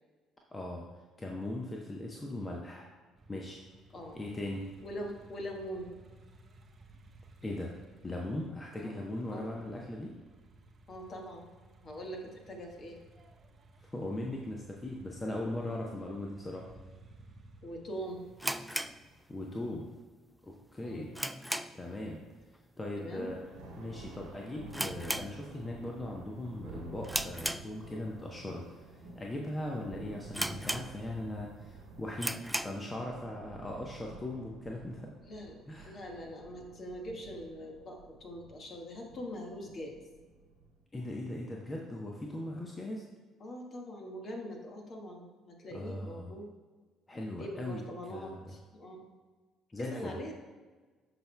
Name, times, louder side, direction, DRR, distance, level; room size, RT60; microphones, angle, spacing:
voice 1, 0.5-0.9 1.2-2.9 3.3-3.6 4.1-4.7 7.4-7.8 8.0-10.1 13.8-16.7 19.3-19.9 20.4-21.1 21.7-22.2 22.8-23.4 23.8-32.3 32.6-35.1 35.7-36.0 40.9-43.0 45.7-46.3 47.1-47.8 48.1-48.4 49.7-50.2, left 1 dB, 25° left, 0 dB, 0.9 m, -39 dB
sound 1, 3.1-19.4, right 2 dB, 40° right, 0.8 m, -58 dB
voice 2, 4.8-5.9 8.8-9.0 9.3-9.5 10.9-11.5 11.8-13.0 17.6-18.2 20.8-21.1 22.9-23.3 35.2-40.0 43.4-46.5 47.1-49.1 49.8-50.3, equal, 45° left, 1 dB, 1.4 m, -43 dB
sound 2, 18.4-19.7 20.0-20.1 20.6-22.0 22.3-22.6 22.8-22.9 23.6-23.9 24.2-24.3 24.7-25.9 26.2-26.5 27.0-28.2 28.7-28.8 29.4-29.5 29.8-29.9 30.3-31.3 31.7-31.8 32.1-32.9, equal, 5° right, 0.3 m, -36 dB
Thunder, 23.1-40.8, right 3 dB, 70° right, 1.3 m, -51 dB
13.0 x 4.5 x 2.2 m, 1.4 s
figure-of-eight pair, 50°, 0 cm